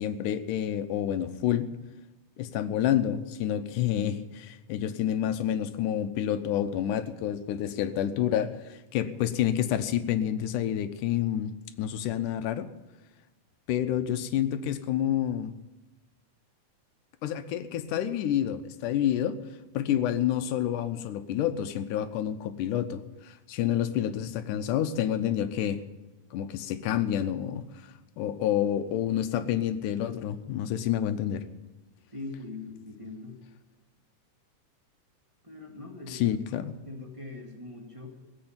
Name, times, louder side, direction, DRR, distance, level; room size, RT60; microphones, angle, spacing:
voice 1, 0.0-1.7 2.4-12.7 13.7-15.5 17.2-19.4 19.7-25.8 26.3-27.7 28.2-31.4 36.1-36.7, left 10 dB, 80° left, 10 dB, 2.3 m, -28 dB
voice 2, 32.1-33.3 35.4-36.3 36.8-38.1, left 3 dB, 15° right, -1 dB, 1.5 m, -41 dB
16.5 x 7.8 x 8.8 m, 1.1 s
omnidirectional pair, 3.7 m